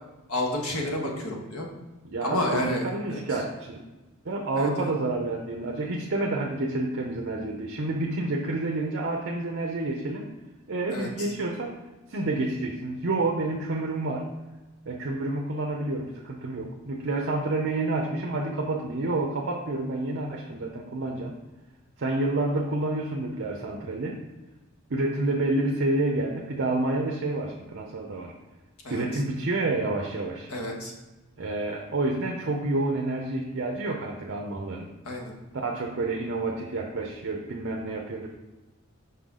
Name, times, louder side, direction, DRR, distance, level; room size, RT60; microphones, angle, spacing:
voice 1, 0.3-1.7 2.2-3.2 4.6-4.9 10.9-11.3 28.8-29.0 30.5-30.9 35.0-35.3, left 1 dB, 90° left, 0 dB, 1.4 m, -30 dB
voice 2, 2.0-3.8 4.2-10.3 10.7-11.7 12.1-14.2 14.9-21.3 22.0-24.2 24.9-28.3 28.9-30.5 31.4-34.9 35.5-38.3, right 2 dB, 55° right, 1 dB, 0.7 m, -29 dB
5.8 x 5.5 x 3.7 m, 1.1 s
head